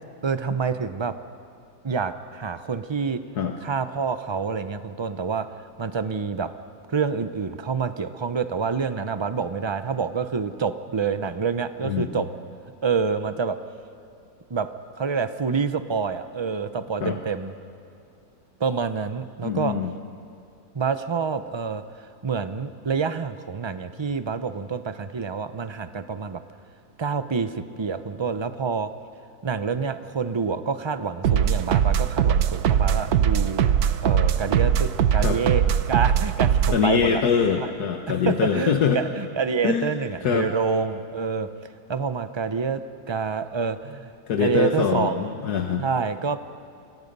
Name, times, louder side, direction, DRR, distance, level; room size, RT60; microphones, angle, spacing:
voice 1, 0.2-1.1 1.8-3.2 3.6-5.5 5.8-6.5 6.9-12.3 12.8-13.6 14.5-14.7 15.0-17.5 18.6-19.7 20.7-26.4 27.0-28.9 29.4-33.7 34.0-37.2 37.6-37.7 38.1-41.5 41.9-42.8 43.1-44.1 44.4-45.4 45.8-46.4, right 5 dB, 40° right, 10 dB, 0.4 m, -27 dB
voice 2, 19.4-19.9 35.2-35.4 36.7-39.0 39.6-39.9 40.2-40.5 44.3-45.8, left 7 dB, 75° left, 3 dB, 1.7 m, -23 dB
sound 1, 31.2-36.9, right 9 dB, 70° right, 1.3 m, -21 dB
29.5 x 25.0 x 5.4 m, 2.5 s
omnidirectional pair, 1.7 m